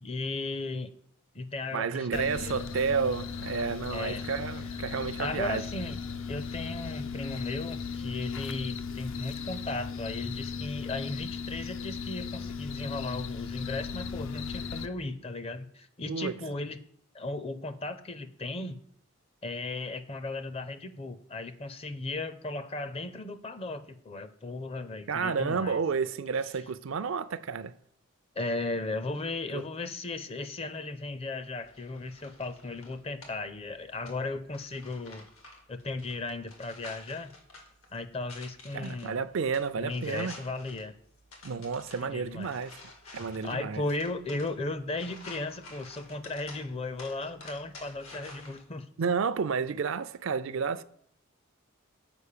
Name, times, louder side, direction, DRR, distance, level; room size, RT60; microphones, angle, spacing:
voice 1, 0.0-0.9 1.3-2.6 3.9-4.3 4.5-4.6 5.2-6.0 6.3-16.8 17.1-18.8 19.4-25.8 28.4-35.3 35.7-37.3 37.9-39.2 39.8-40.9 42.0-42.5 43.1-48.9, left 2 dB, 30° left, 0.5 m, -36 dB
voice 2, 1.7-5.6 16.1-16.3 25.1-27.7 29.5-29.6 38.7-40.3 41.4-42.8 43.1-43.8 49.0-50.8, right 5 dB, 65° right, 0.4 m, -31 dB
sound 1, 2.1-14.9, left 5 dB, 70° left, 0.6 m, -37 dB
sound 2, 31.6-48.6, left 2 dB, 85° left, 2.0 m, -51 dB
6.9 x 5.2 x 6.6 m
head